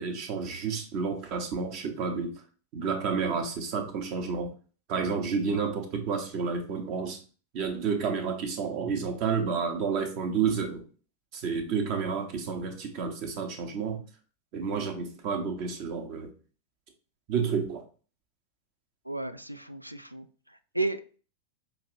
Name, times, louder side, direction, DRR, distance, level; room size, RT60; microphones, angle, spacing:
voice 1, 0.0-2.3 2.7-4.5 4.9-7.2 7.5-10.8 11.3-14.0 14.5-16.3 17.3-17.8, right 5 dB, 45° right, 5 dB, 0.9 m, -30 dB
voice 2, 19.0-21.2, right 2 dB, 85° right, 12 dB, 0.3 m, -34 dB
5.7 x 2.6 x 3.1 m, 0.39 s
figure-of-eight pair, 90°, 0 cm